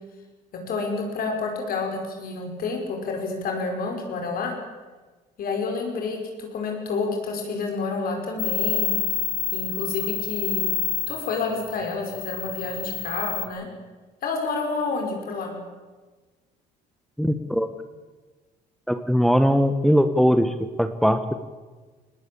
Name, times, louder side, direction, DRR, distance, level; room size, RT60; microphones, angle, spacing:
voice 1, 0.5-4.6 5.4-8.9 9.5-10.6 11.1-13.7 14.2-15.6, left 4 dB, 60° left, 2 dB, 5.4 m, -29 dB
sound 1, 8.4-13.5, left 7 dB, 35° left, 3.4 m, -28 dB
voice 2, 17.2-17.7 18.9-21.3, equal, ahead, 9 dB, 1.2 m, -20 dB
20.0 x 18.5 x 8.6 m, 1.3 s
cardioid pair, 110°, 17 cm